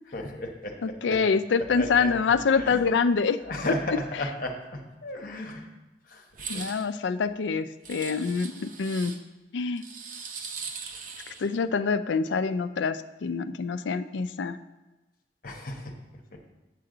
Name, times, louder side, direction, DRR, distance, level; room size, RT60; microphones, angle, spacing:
voice 1, 0.1-0.7 1.1-1.2 1.7-2.1 2.5-2.8 3.5-5.7 6.1-6.2 6.5-6.6 15.4-15.9, left 1 dB, 50° left, 2 dB, 1.1 m, -33 dB
voice 2, 0.8-3.4 3.9-4.0 6.5-9.1 9.5-9.8 11.4-14.6, left 5 dB, 90° left, 12 dB, 0.4 m, -26 dB
sound 1, 6.3-6.9 7.8-9.2 9.8-11.5, right 5 dB, 45° right, 0.8 m, -40 dB
7.9 x 7.5 x 3.9 m, 1.1 s
head